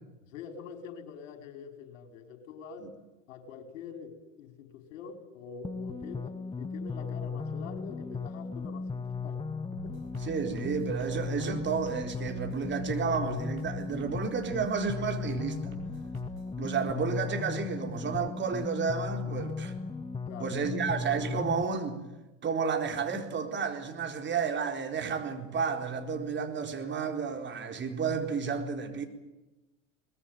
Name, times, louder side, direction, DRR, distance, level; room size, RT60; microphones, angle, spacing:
voice 1, 0.3-2.9 3.3-9.4 9.8-9.9 20.3-21.1, left 6 dB, 65° left, 5.1 m, -45 dB
sound 1, 5.6-21.6, left 4 dB, 10° left, 1.1 m, -36 dB
sound 2, 9.7-16.5, right 3 dB, 90° right, 5.0 m, -47 dB
voice 2, 10.2-15.6 16.6-19.7 20.4-22.0 22.4-29.0, right 5 dB, 25° right, 4.2 m, -31 dB
22.5 x 20.5 x 9.3 m
hypercardioid pair, 85°, 40 cm